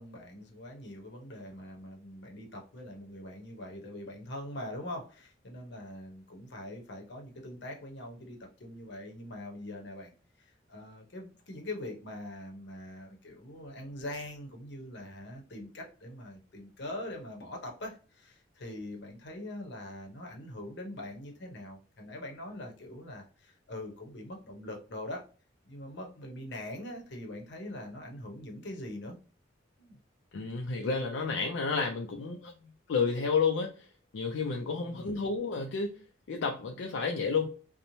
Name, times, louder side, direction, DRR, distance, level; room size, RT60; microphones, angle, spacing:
voice 1, 0.0-10.1 10.7-25.3 25.6-29.2 29.8-30.0 34.7-35.2, left 1 dB, 65° left, 2 dB, 0.8 m, -43 dB
voice 2, 30.3-33.7 34.1-36.0 36.3-37.5, left 5 dB, 85° left, 1 dB, 0.4 m, -31 dB
2.9 x 2.1 x 2.6 m, 0.36 s
head